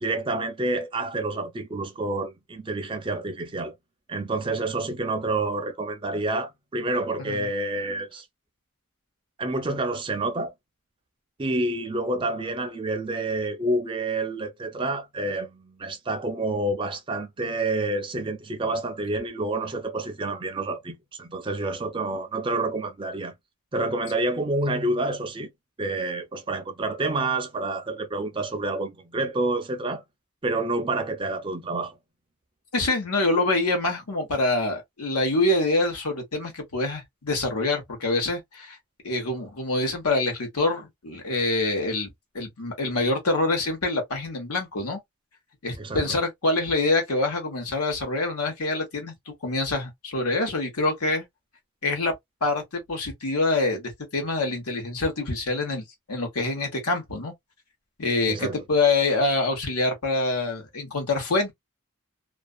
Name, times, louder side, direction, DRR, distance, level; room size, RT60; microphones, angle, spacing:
voice 1, 0.0-3.7 4.1-8.2 9.4-10.5 11.4-23.3 23.7-25.5 25.8-30.0 30.4-32.0 45.8-46.1 58.3-58.6, right 2 dB, 25° right, 0.4 m, -28 dB
voice 2, 32.7-38.8 39.0-42.1 42.3-45.0 45.6-51.3 51.8-52.1 52.4-57.3 58.0-61.5, left 2 dB, 90° left, 1.1 m, -25 dB
2.5 x 2.3 x 2.3 m
head